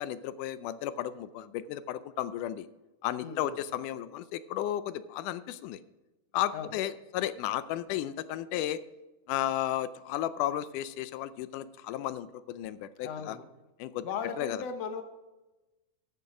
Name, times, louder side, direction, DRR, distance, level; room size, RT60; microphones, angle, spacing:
voice 1, 0.0-2.7 3.0-5.8 6.3-8.8 9.3-13.4 13.8-14.1 14.4-14.6, left 12 dB, 85° left, 14 dB, 2.1 m, -33 dB
voice 2, 3.2-3.6 6.5-6.7 13.0-13.5 14.0-15.0, left 6 dB, 65° left, 7 dB, 1.9 m, -37 dB
13.5 x 6.9 x 5.0 m, 1.1 s
omnidirectional pair, 3.6 m